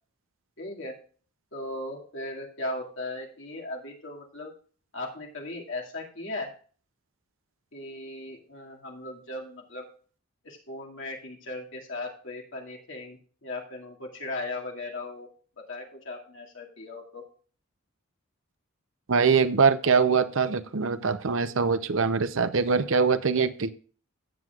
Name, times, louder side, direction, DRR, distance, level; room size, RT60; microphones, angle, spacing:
voice 1, 0.6-1.0 1.5-4.5 4.9-6.5 7.7-9.8 10.4-15.3 15.6-17.2, left 2 dB, 60° left, 2.3 m, -37 dB
voice 2, 19.1-23.7, right 5 dB, 65° right, 0.7 m, -23 dB
15.5 x 7.6 x 2.4 m
head